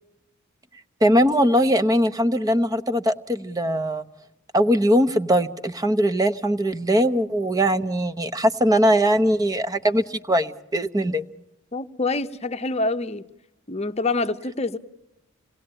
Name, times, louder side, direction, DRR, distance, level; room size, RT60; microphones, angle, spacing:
voice 1, 1.0-4.0 4.5-11.2, equal, 15° right, 0.8 m, -21 dB
voice 2, 11.7-13.3 13.7-14.8, left 3 dB, 30° left, 0.8 m, -26 dB
27.0 x 18.5 x 8.8 m
head